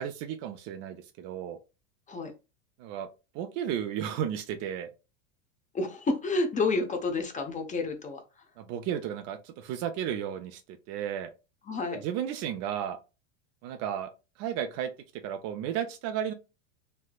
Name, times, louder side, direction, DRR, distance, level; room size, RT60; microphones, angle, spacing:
voice 1, 0.0-1.6 2.8-3.1 3.3-4.9 8.6-10.6 10.9-11.3 11.9-13.0 13.6-14.1 14.4-16.3, right 9 dB, 45° right, 0.4 m, -33 dB
voice 2, 5.7-8.2 11.7-12.0, left 3 dB, 20° left, 0.7 m, -29 dB
3.2 x 2.7 x 2.2 m
hypercardioid pair, 105°, 38 cm